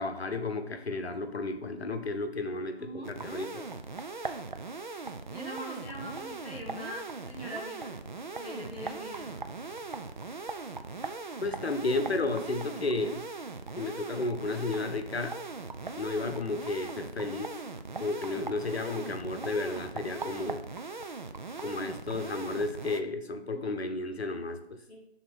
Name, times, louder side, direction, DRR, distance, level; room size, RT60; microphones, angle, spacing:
voice 1, 0.0-3.7 11.4-13.2 13.8-15.4 16.0-17.5 18.0-20.6 21.6-24.8, left 3 dB, 75° left, 7 dB, 1.0 m, -33 dB
voice 2, 2.8-3.1 5.3-7.9 8.3-9.4 23.5-23.7 24.9-25.0, right 1 dB, ahead, -17 dB, 0.9 m, -42 dB
sound 1, 3.0-23.0, right 3 dB, 50° right, 0.4 m, -40 dB
5.9 x 3.9 x 5.0 m, 0.76 s
figure-of-eight pair, 165°, 32 cm